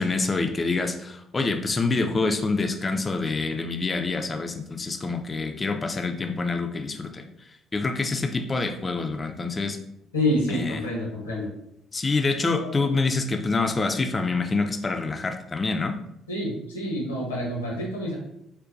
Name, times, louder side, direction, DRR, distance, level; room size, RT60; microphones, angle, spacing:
voice 1, 0.0-7.3 7.7-9.8 10.5-10.8 11.9-15.9, left 3 dB, 30° left, 5 dB, 0.3 m, -26 dB
voice 2, 10.1-11.5 12.5-12.7 16.3-18.2, left 1 dB, 85° left, -2 dB, 0.8 m, -27 dB
3.7 x 2.2 x 2.5 m, 0.79 s
figure-of-eight pair, 45°, 0 cm